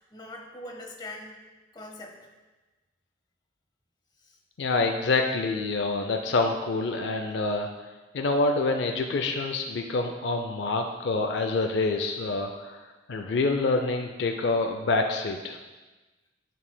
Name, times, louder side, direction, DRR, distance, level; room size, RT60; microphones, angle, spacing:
voice 1, 0.0-1.4 1.7-2.2 4.2-4.4, left 1 dB, 25° left, 1 dB, 0.8 m, -42 dB
voice 2, 4.6-7.7 8.1-12.8 13.1-15.6, left 3 dB, 65° left, 4 dB, 0.4 m, -26 dB
12.0 x 4.6 x 2.2 m, 1.2 s
head